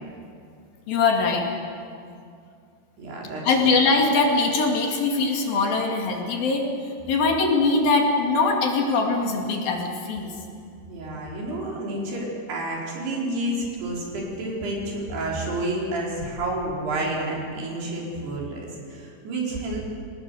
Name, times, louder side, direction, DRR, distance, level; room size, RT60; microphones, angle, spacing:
voice 1, 0.9-1.5 3.4-6.7 7.1-10.3, left 3 dB, 65° left, 1 dB, 4.1 m, -22 dB
voice 2, 3.0-3.7 10.9-19.8, right 1 dB, 80° right, -3 dB, 6.4 m, -30 dB
27.5 x 18.5 x 7.0 m, 2.4 s
omnidirectional pair, 4.6 m